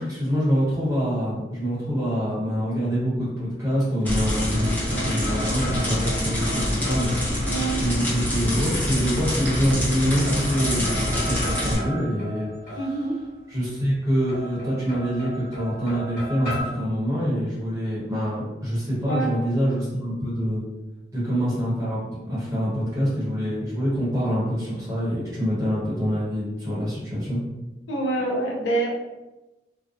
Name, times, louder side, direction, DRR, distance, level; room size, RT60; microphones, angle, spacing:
voice 1, 0.0-4.8 5.0-7.5 7.8-12.8 13.5-20.6 21.1-22.0 22.3-27.4, equal, 15° right, -9 dB, 0.9 m, -25 dB
sound 1, 3.7-8.1 8.3-10.5, right 1 dB, 80° right, 0.5 m, -42 dB
sound 2, 4.0-11.7, left 1 dB, 10° left, 0.6 m, -26 dB
sound 3, 4.5-8.1 9.3-9.9 10.2-13.4 14.3-16.6, equal, 50° left, 1.4 m, -36 dB
voice 2, 7.5-7.9 12.8-13.1 19.0-19.3 27.9-28.9, right 2 dB, 80° left, 0 dB, 0.5 m, -26 dB
2.5 x 2.1 x 2.4 m, 1.0 s
head